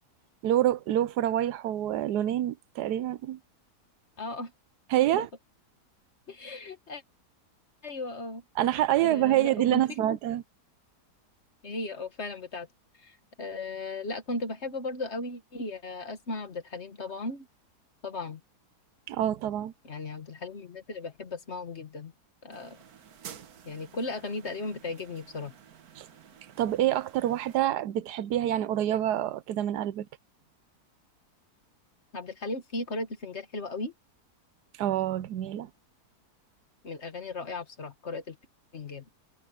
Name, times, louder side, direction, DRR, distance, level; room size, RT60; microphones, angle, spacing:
voice 1, 0.4-3.4 4.9-5.3 8.6-10.4 19.1-19.7 26.0-26.1 26.6-30.1 34.8-35.7, right 12 dB, 85° right, 1.2 m, -27 dB
voice 2, 4.2-4.5 5.2-5.3 6.3-7.0 7.8-8.4 9.0-10.2 11.6-12.7 13.0-17.5 18.0-18.4 19.8-22.1 22.4-22.8 23.7-25.5 32.1-33.9 36.8-38.4 38.7-39.1, left 2 dB, 45° left, 1.7 m, -36 dB
sound 1, 22.5-27.6, right 8 dB, 65° right, 1.6 m, -51 dB
omnidirectional pair, 1.7 m